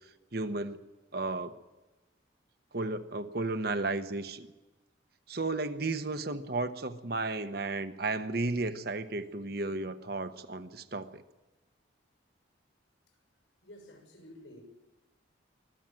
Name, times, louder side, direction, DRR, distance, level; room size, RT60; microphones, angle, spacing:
voice 1, 0.3-0.8 1.1-1.5 2.7-4.5 5.3-11.2, right 2 dB, 55° right, 9 dB, 1.0 m, -33 dB
voice 2, 13.6-14.6, left 1 dB, 80° left, 3 dB, 6.5 m, -51 dB
24.0 x 15.5 x 7.7 m, 1.1 s
head